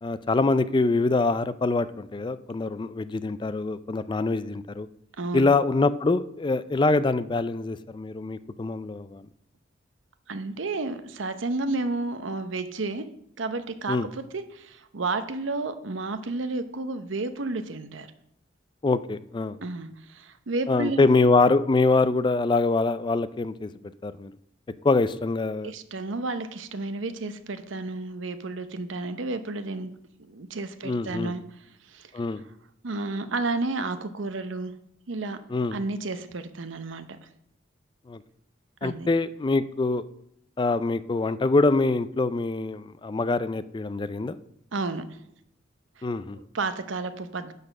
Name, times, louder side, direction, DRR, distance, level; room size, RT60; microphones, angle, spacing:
voice 1, 0.0-4.9 5.3-9.2 13.9-14.1 18.8-19.6 20.7-23.7 24.0-24.3 24.8-25.7 30.8-31.3 32.1-32.4 35.5-35.8 38.1-38.2 38.8-40.0 40.6-44.4 46.0-46.4, left 3 dB, 25° left, 14 dB, 0.4 m, -24 dB
voice 2, 5.2-5.5 10.3-13.1 13.4-18.1 19.6-21.1 25.6-29.9 30.2-31.4 31.8-32.1 32.8-34.7 35.1-35.4 35.7-37.3 38.8-39.1 44.7-45.2 46.0-46.1 46.3-47.5, right 3 dB, 80° right, 10 dB, 0.8 m, -31 dB
10.5 x 4.1 x 6.5 m, 0.74 s
head